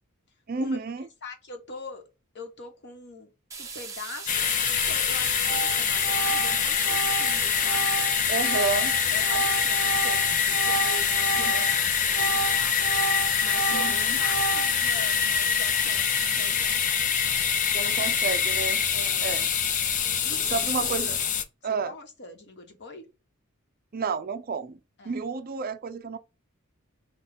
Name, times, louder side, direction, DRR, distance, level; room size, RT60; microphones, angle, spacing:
voice 1, 0.5-1.1 8.3-8.9 11.5-11.6 13.7-14.2 17.7-18.8 19.2-19.5 20.3-21.2 21.6-21.9 23.9-24.8 25.0-26.2, right 5 dB, 45° right, 0.5 m, -30 dB
voice 2, 1.2-2.0 2.3-8.1 9.1-12.8 13.0-16.9 18.0-18.2 18.9-19.3 20.1-21.1 21.6-23.1 25.0-25.2, left 3 dB, 55° left, 1.1 m, -42 dB
sound 1, 3.5-16.8, right 5 dB, 15° right, 1.0 m, -40 dB
sound 2, 4.3-21.4, left 7 dB, 35° left, 0.5 m, -25 dB
Organ, 4.9-5.1 5.4-11.8 12.1-15.0, right 5 dB, 85° right, 0.6 m, -32 dB
5.8 x 2.3 x 3.5 m
head